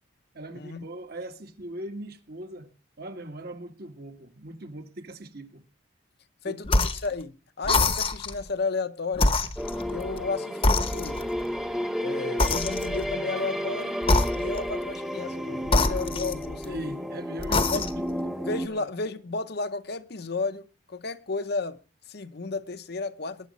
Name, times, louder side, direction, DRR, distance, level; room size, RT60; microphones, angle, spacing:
voice 1, 0.3-2.7 3.0-5.6 6.4-6.6 16.6-18.1 18.6-18.9, right 1 dB, 55° right, 1.5 m, -40 dB
voice 2, 6.4-9.4 9.9-11.3 12.0-14.0 14.3-16.8 17.7-17.8 18.5-21.8 22.1-23.5, left 3 dB, 55° left, 0.8 m, -33 dB
sound 1, 6.7-7.1 7.6-8.4 9.1-10.3 10.6-11.4 12.4-13.1 14.0-14.7 15.7-16.8 17.4-18.1, left 2 dB, 30° left, 0.9 m, -25 dB
sound 2, 9.6-18.7, equal, ahead, 0.8 m, -32 dB
20.0 x 9.5 x 4.1 m
head